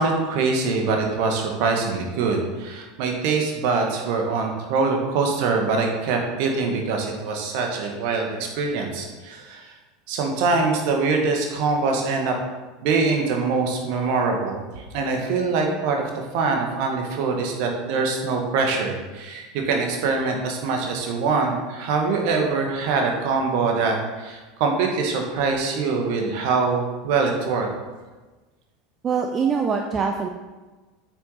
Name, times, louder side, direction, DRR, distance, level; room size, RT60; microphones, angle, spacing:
voice 1, 0.0-8.3 8.6-9.7 10.1-12.4 12.8-16.0 16.3-27.7 29.4-29.6, right 4 dB, 50° right, 2 dB, 2.0 m, -23 dB
voice 2, 29.0-30.3, right 6 dB, 30° right, 4 dB, 0.7 m, -23 dB
9.0 x 6.4 x 5.7 m, 1.2 s
figure-of-eight pair, 75°, 0 cm